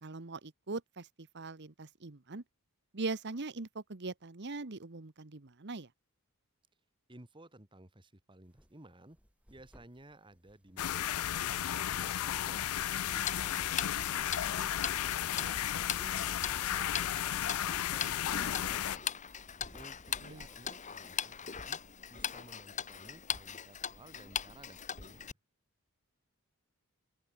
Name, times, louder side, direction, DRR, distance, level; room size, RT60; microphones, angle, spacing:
voice 1, 0.0-2.4 2.9-5.9 20.2-20.5, right 3 dB, 50° right, 1.2 m, -41 dB
voice 2, 7.1-9.2 9.5-12.6 13.1-14.7 15.0-19.1 19.7-21.8 22.1-25.3, right 1 dB, 20° right, 2.0 m, -56 dB
sound 1, 8.4-8.7 9.1-11.6 12.7-13.6 14.1-14.6 16.2-17.2 18.8-20.7, equal, 5° right, 7.7 m, -60 dB
sound 2, 10.8-19.0, left 11 dB, 80° left, 0.5 m, -34 dB
Tick-tock, 13.1-25.3, left 8 dB, 35° left, 1.4 m, -40 dB
open air
head